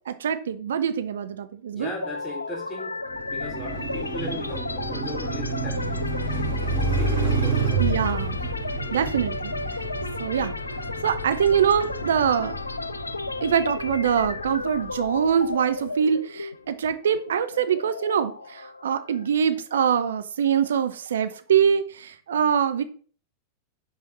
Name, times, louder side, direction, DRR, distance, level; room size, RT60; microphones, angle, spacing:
voice 1, 0.1-1.9 7.8-8.4 8.9-9.5 10.2-10.5 11.0-12.5 13.4-22.8, right 8 dB, 65° right, 11 dB, 0.5 m, -24 dB
voice 2, 1.7-2.9 3.3-5.8 6.2-8.0, left 1 dB, 20° left, 0 dB, 2.2 m, -37 dB
sound 1, 2.0-19.8, left 3 dB, 80° left, 0.3 m, -34 dB
Car passing by, 3.1-15.3, right 3 dB, 80° right, 3.5 m, -30 dB
5.9 x 5.7 x 3.2 m, 0.42 s
figure-of-eight pair, 90°, 0 cm